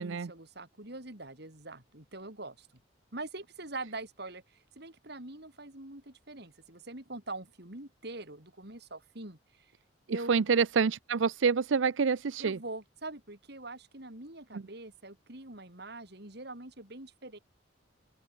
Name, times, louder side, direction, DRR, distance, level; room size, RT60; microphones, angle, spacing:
voice 1, 0.0-2.7 3.1-9.7 10.1-10.3 12.4-17.4, right 2 dB, 60° right, 4.5 m, -44 dB
voice 2, 10.1-12.6 14.5-14.6, right 5 dB, 80° right, 0.5 m, -27 dB
open air
head